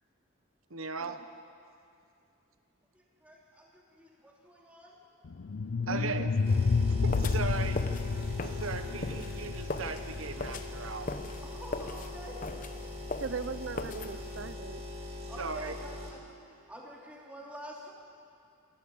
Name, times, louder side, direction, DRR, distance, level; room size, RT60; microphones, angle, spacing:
voice 1, 0.7-1.2 5.9-6.3 7.1-7.9 8.4-11.1 15.2-15.8, right 4 dB, 80° right, 9 dB, 1.2 m, -38 dB
voice 2, 2.9-5.0 11.4-12.4 15.3-17.9, equal, 5° right, -3 dB, 3.1 m, -48 dB
sound 1, 5.3-10.4, left 4 dB, 65° left, 0.5 m, -30 dB
voice 3, 5.8-6.6 7.0-7.2 13.2-14.8, right 4 dB, 60° right, 13 dB, 0.6 m, -39 dB
sound 2, 6.4-16.1, left 1 dB, 25° right, 2.3 m, -42 dB
sound 3, 7.1-14.5, left 3 dB, 40° left, 0.9 m, -40 dB
27.0 x 12.5 x 8.5 m, 2.5 s
head